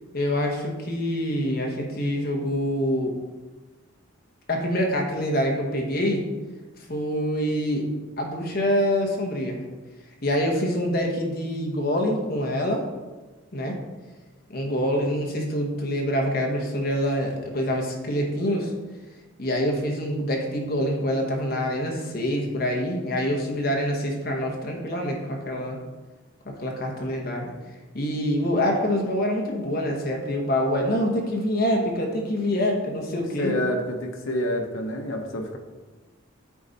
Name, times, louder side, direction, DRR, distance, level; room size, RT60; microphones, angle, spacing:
voice 1, 0.1-3.2 4.5-6.3 6.9-7.9 8.2-9.6 10.2-12.8 13.5-13.8 14.5-18.7 19.4-25.8 26.4-27.5 27.9-33.5, equal, 50° left, 1 dB, 1.2 m, -25 dB
voice 2, 33.4-35.6, equal, 80° left, 3 dB, 1.0 m, -28 dB
8.6 x 4.2 x 4.1 m, 1.2 s
head